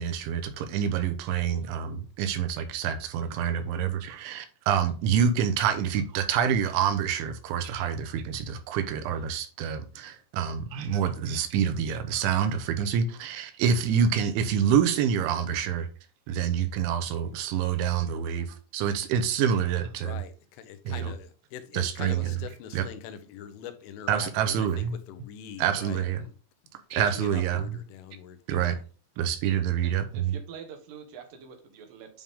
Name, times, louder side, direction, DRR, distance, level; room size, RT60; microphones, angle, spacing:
voice 1, 0.0-15.9 16.3-20.2 20.9-21.1 21.7-22.4 22.7-22.9 24.1-25.0 25.6-26.3 26.9-27.8 28.5-28.8 29.2-30.4, right 8 dB, 85° right, 3.2 m, -27 dB
voice 2, 20.0-26.3 26.9-28.8, left 9 dB, 85° left, 3.4 m, -43 dB
voice 3, 29.8-32.2, right 7 dB, 65° right, 2.3 m, -45 dB
9.8 x 3.6 x 3.6 m
omnidirectional pair, 5.5 m